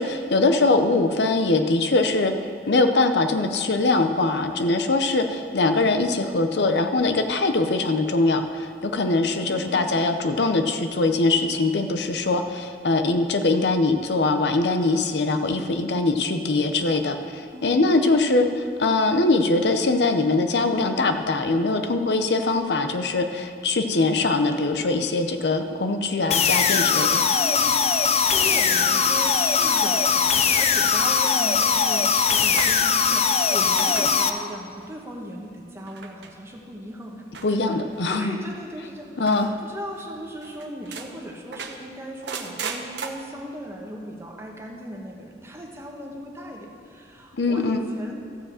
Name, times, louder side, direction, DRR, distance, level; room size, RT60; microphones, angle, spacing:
voice 1, 0.0-2.3 2.7-27.3 37.4-38.4 39.2-39.5 47.4-47.8, left 3 dB, 75° left, 7 dB, 0.7 m, -22 dB
voice 2, 9.5-10.0 17.5-18.0 27.4-37.8 38.1-39.3 39.6-48.2, equal, 15° right, 0 dB, 1.2 m, -37 dB
sound 1, 26.3-34.3, left 6 dB, 35° left, 0.5 m, -20 dB
sound 2, 29.6-30.5 30.9-33.3 33.6-34.2 34.5-34.9 35.8-36.3 37.3-38.1 39.2-39.6 40.0-40.1 40.4-41.1 41.5-43.1, right 5 dB, 80° right, 0.9 m, -37 dB
14.0 x 4.9 x 7.6 m, 2.2 s
head